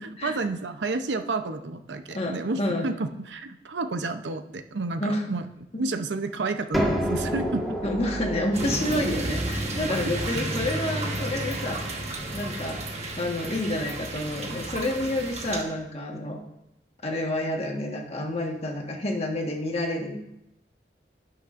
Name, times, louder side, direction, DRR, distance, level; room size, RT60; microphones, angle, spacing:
voice 1, 0.0-5.4 5.8-7.8 10.0-10.1, right 3 dB, 80° right, 9 dB, 0.6 m, -30 dB
voice 2, 2.1-2.9 5.0-5.2 7.8-16.4 17.0-20.2, left 1 dB, 35° left, 1 dB, 1.4 m, -29 dB
sound 1, 6.7-12.3, equal, ahead, 1.5 m, -31 dB
sound 2, 8.5-15.6, right 1 dB, 40° right, 1.2 m, -31 dB
16.5 x 6.0 x 2.5 m, 0.85 s
head